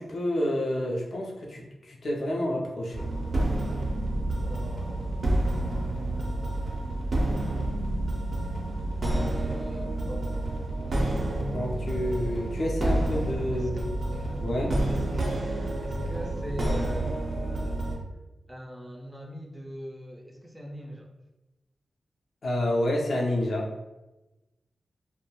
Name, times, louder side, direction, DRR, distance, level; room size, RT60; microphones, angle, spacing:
voice 1, 0.0-3.1 11.5-13.7 14.4-14.8 22.4-23.7, left 1 dB, 70° left, -2 dB, 0.5 m, -29 dB
sound 1, 2.9-18.0, right 1 dB, 65° right, 0.5 m, -29 dB
voice 2, 4.5-5.4 6.1-6.9 9.1-10.5 10.8-11.5 13.5-14.4 14.9-15.3 15.8-17.9 18.5-21.1, equal, 5° right, 1 dB, 0.4 m, -42 dB
2.2 x 2.1 x 3.0 m, 1.0 s
cardioid pair, 75°, 0 cm